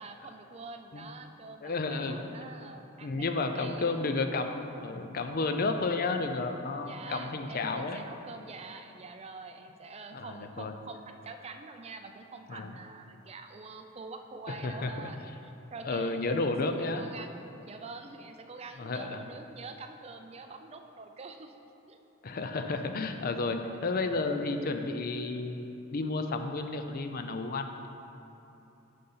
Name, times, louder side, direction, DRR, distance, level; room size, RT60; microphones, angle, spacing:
voice 1, 0.0-4.0 6.8-16.5 16.9-17.3 17.6-21.6 21.9-22.0 22.5-22.6 23.8-24.4, right 3 dB, 30° right, 6 dB, 0.4 m, -46 dB
voice 2, 1.6-2.3 3.0-8.0 10.1-10.7 12.5-12.7 14.5-15.1 15.8-17.1 18.8-19.2 22.2-27.9, left 3 dB, 45° left, 6 dB, 0.5 m, -32 dB
6.6 x 5.5 x 5.6 m, 2.9 s
head